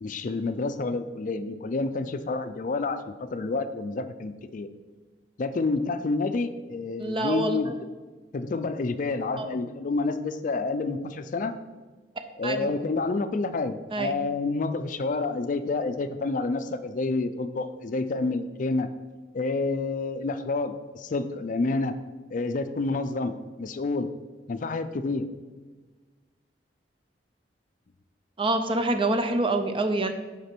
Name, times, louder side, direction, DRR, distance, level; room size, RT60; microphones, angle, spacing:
voice 1, 0.0-4.7 5.4-7.7 8.3-11.5 12.4-18.9 19.3-21.9 22.3-23.3 23.6-24.1 24.5-25.3, left 3 dB, 45° left, 10 dB, 0.4 m, -29 dB
voice 2, 7.0-7.7 9.3-9.5 12.4-12.7 13.9-14.2 28.4-30.1, right 2 dB, 30° right, 7 dB, 0.6 m, -26 dB
8.1 x 5.0 x 4.4 m, 1.3 s
head